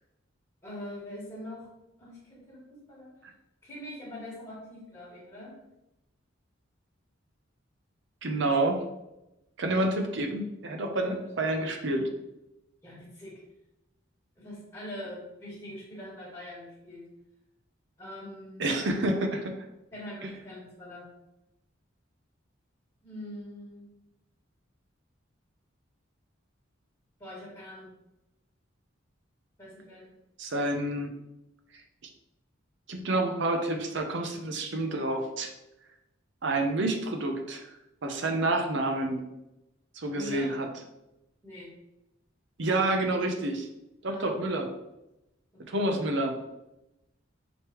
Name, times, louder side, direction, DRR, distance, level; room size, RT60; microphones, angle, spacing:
voice 1, 0.6-1.7 2.0-3.1 3.6-5.5 11.0-11.2 12.8-13.3 14.4-17.0 18.0-18.6 19.9-21.0 23.0-23.9 27.2-27.9 29.6-30.1 34.9-35.0 40.1-40.5 41.4-41.7 44.1-44.3 45.5-45.8, left 1 dB, 15° left, -8 dB, 1.6 m, -43 dB
voice 2, 8.2-8.8 9.6-12.1 18.6-19.6 20.2-20.3 30.4-31.1 32.9-35.5 36.4-37.6 38.0-39.2 39.9-40.7 42.6-43.7 44.0-44.7 45.7-46.4, right 2 dB, 65° right, 4 dB, 0.7 m, -28 dB
5.1 x 3.2 x 3.0 m, 0.91 s
head